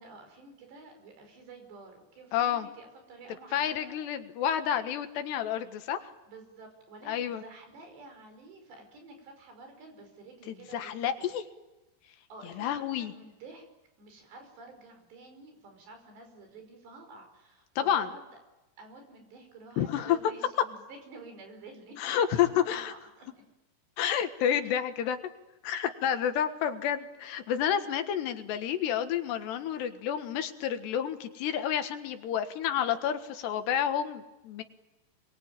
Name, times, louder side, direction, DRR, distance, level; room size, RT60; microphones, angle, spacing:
voice 1, 0.0-4.0 6.3-11.3 12.3-13.7 14.0-18.2 18.8-23.4 24.6-24.7, right 3 dB, 75° right, 5 dB, 7.4 m, -50 dB
voice 2, 2.3-2.7 3.5-6.1 7.1-7.4 10.7-11.4 12.6-13.1 17.8-18.1 19.8-20.2 22.0-22.9 24.0-25.2 25.6-34.6, left 9 dB, 75° left, 8 dB, 3.7 m, -29 dB
27.0 x 22.5 x 9.1 m, 1.0 s
omnidirectional pair, 4.9 m